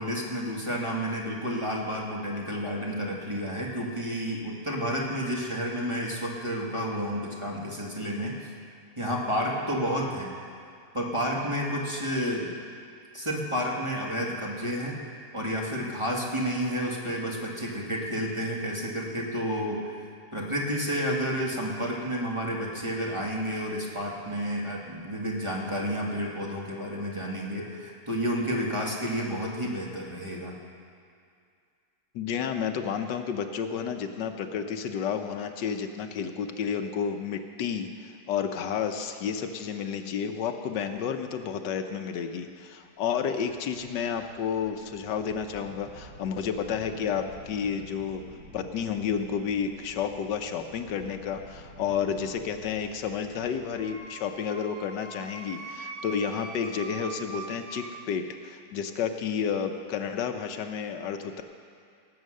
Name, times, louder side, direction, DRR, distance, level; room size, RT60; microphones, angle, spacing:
voice 1, 0.0-8.5 9.0-10.4 10.9-12.5 13.1-15.0 15.3-20.0 20.3-30.6, equal, 15° right, -3 dB, 1.8 m, -30 dB
voice 2, 32.1-48.2 48.5-61.4, left 7 dB, 80° left, 7 dB, 1.4 m, -31 dB
sound 1, 43.3-55.2, right 2 dB, 55° right, 1.9 m, -50 dB
Wind instrument woodwind instrument, 53.8-57.9, right 3 dB, 75° right, 1.9 m, -42 dB
17.5 x 8.3 x 6.4 m, 2.3 s
omnidirectional pair, 1.9 m